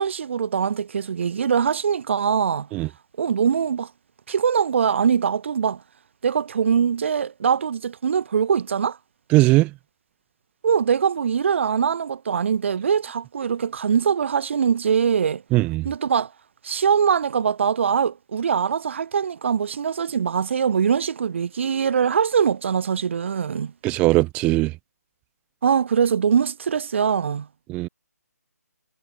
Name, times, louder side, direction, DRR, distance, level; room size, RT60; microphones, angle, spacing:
voice 1, 0.0-2.7 3.2-3.9 4.3-5.8 6.2-9.0 10.6-15.4 15.8-16.3 16.6-23.7 25.6-27.5, right 7 dB, 45° right, 3.0 m, -22 dB
voice 2, 9.3-9.7 15.5-15.9 23.8-24.7 27.7-27.9, right 20 dB, 15° right, 1.1 m, -19 dB
figure-of-eight pair, 155°, 9 cm